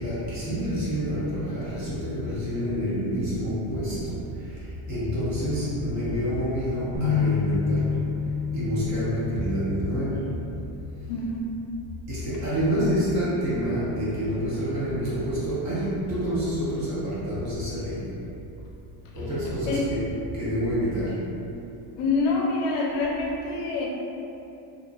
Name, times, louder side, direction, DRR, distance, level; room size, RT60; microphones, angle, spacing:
voice 1, 0.0-4.2 4.9-8.0 8.5-10.3 12.1-18.1 19.1-21.3, equal, 35° right, -10 dB, 0.7 m, -27 dB
sound 1, 7.0-11.0, left 5 dB, 70° right, 1.0 m, -29 dB
voice 2, 11.1-11.4 19.6-19.9 22.0-23.9, left 3 dB, 65° left, -3 dB, 0.5 m, -26 dB
2.7 x 2.5 x 2.3 m, 2.8 s
cardioid pair, 175°, 47 cm